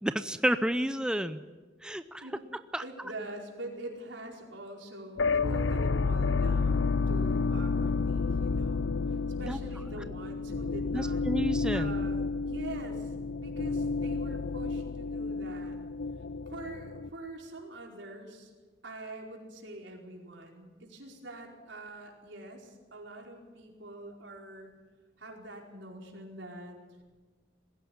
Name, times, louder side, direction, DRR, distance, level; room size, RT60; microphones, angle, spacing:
voice 1, 0.0-1.4 1.8-2.3 2.7-2.8 9.4-9.6 10.9-12.0, right 1 dB, 5° right, 11 dB, 0.6 m, -30 dB
voice 2, 2.8-11.2 11.7-15.8 16.5-18.5 18.8-24.7 25.2-27.0, right 1 dB, 80° right, 0 dB, 4.9 m, -44 dB
sound 1, 5.2-17.1, left 4 dB, 75° left, 0.6 m, -30 dB
20.5 x 16.0 x 9.5 m, 1.3 s
head